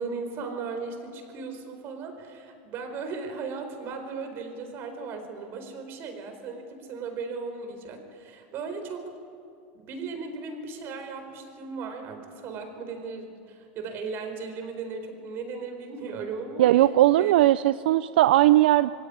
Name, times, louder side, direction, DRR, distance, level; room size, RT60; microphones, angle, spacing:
voice 1, 0.0-9.1 9.7-16.7 17.1-17.3, right 4 dB, 45° right, 6 dB, 4.5 m, -37 dB
voice 2, 16.6-18.9, right 14 dB, 80° right, 15 dB, 0.5 m, -19 dB
23.0 x 17.0 x 9.8 m, 2.5 s
supercardioid pair, 120°, 5 cm